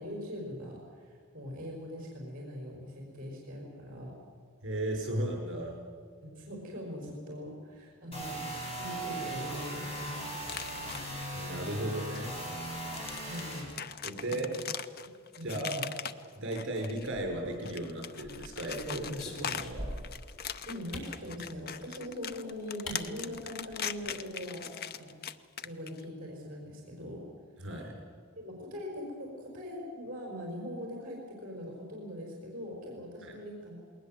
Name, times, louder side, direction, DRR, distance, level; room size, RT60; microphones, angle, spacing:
voice 1, 0.0-4.1 6.2-10.3 13.2-13.7 14.2-14.7 15.0-15.1 15.4-15.9 20.7-25.1 25.6-27.2 28.4-33.8, left 1 dB, 40° right, -1 dB, 4.6 m, -42 dB
voice 2, 4.6-5.8 11.3-12.3 14.0-14.5 15.4-15.8 16.4-20.0 27.6-27.9 33.2-33.4, right 1 dB, 60° right, 2 dB, 5.8 m, -35 dB
sound 1, 8.1-13.6, right 1 dB, 30° left, 6.3 m, -38 dB
sound 2, 10.5-11.3 12.1-12.2 12.6-17.1 17.5-26.0, left 7 dB, 45° left, 0.7 m, -40 dB
sound 3, 17.0-17.7 18.2-20.2 20.9-21.2 22.3-22.4 22.9-23.0 23.3-23.4 23.7-24.1, left 1 dB, 80° left, 4.3 m, -42 dB
20.5 x 19.5 x 7.7 m, 2.1 s
head